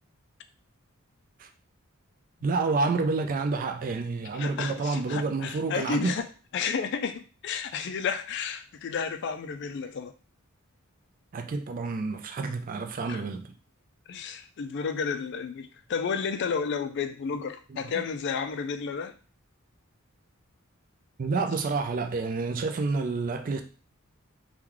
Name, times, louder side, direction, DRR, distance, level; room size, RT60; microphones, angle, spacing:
voice 1, 2.4-6.1 11.3-13.5 17.7-17.9 21.2-23.6, right 3 dB, 40° right, 0.4 m, -29 dB
voice 2, 4.3-6.3 6.5-10.1 13.1-13.2 14.1-19.1, left 6 dB, 55° left, 0.4 m, -32 dB
3.0 x 2.2 x 3.7 m
head